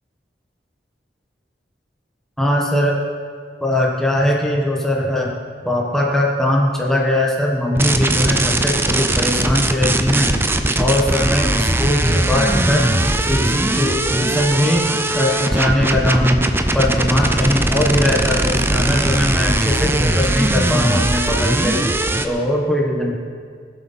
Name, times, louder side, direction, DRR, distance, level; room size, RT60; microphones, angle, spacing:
voice 1, 2.4-3.0 3.6-5.3 5.6-10.3 10.8-12.9 13.3-14.8 15.1-16.4 16.7-21.8 22.2-23.1, left 1 dB, 5° left, -3 dB, 1.4 m, -20 dB
sound 1, 7.8-22.3, right 1 dB, 15° right, 0.6 m, -19 dB
19.0 x 8.0 x 5.7 m, 2.1 s
head